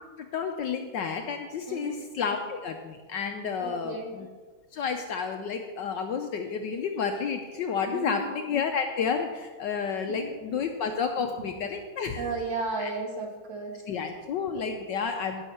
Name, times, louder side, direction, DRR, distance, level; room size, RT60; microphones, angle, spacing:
voice 1, 0.2-4.3 4.7-12.3 12.8-12.9 13.9-15.5, left 6 dB, 70° left, 5 dB, 1.1 m, -31 dB
voice 2, 1.7-2.0 3.6-4.1 7.9-8.3 10.2-10.6 11.2-11.3 12.2-13.8, right 3 dB, 55° right, 0 dB, 2.3 m, -34 dB
17.0 x 6.5 x 4.3 m, 1.4 s
omnidirectional pair, 2.4 m